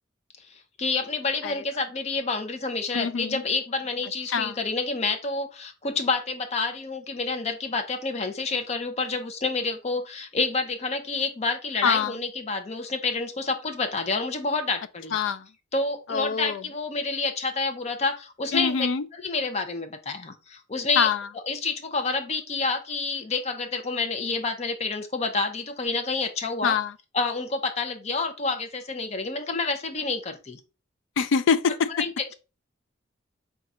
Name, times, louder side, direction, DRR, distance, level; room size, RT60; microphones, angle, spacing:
voice 1, 0.8-15.2 15.7-18.8 19.1-21.1 21.5-26.8 27.1-30.6 31.9-32.3, left 3 dB, 35° left, 0.6 m, -28 dB
voice 2, 2.9-3.4 4.3-4.5 11.8-12.2 15.1-15.4 16.1-16.6 18.5-19.0 21.0-21.2 26.6-26.9 31.2-31.9, left 6 dB, 75° left, 0.4 m, -24 dB
3.8 x 2.3 x 4.2 m
head